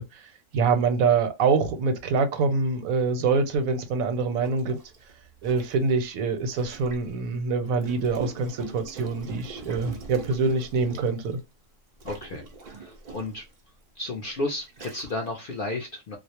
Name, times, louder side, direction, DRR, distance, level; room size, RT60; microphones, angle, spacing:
voice 1, 0.0-4.8 5.4-11.4, right 4 dB, 90° right, 1.1 m, -25 dB
Gurgling, 4.4-7.1 7.8-11.4 12.0-13.5 14.2-14.3 14.7-15.3, right 4 dB, 60° right, 0.4 m, -42 dB
voice 2, 12.0-13.4 13.9-16.2, left 2 dB, 65° left, 0.5 m, -33 dB
2.4 x 2.0 x 2.8 m
omnidirectional pair, 1.4 m